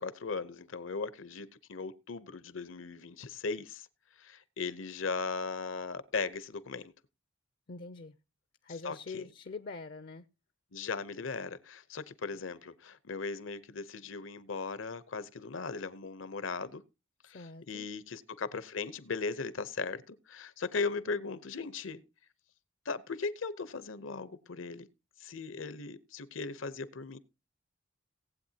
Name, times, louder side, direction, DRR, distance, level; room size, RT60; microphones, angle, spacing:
voice 1, 0.0-3.9 4.2-6.9 8.8-9.2 10.7-16.8 17.2-22.0 22.9-24.9 25.2-27.2, left 4 dB, 80° left, 0.8 m, -38 dB
voice 2, 7.7-8.2 8.6-10.3 17.3-17.9, left 4 dB, 50° left, 0.5 m, -44 dB
18.5 x 8.3 x 2.8 m
head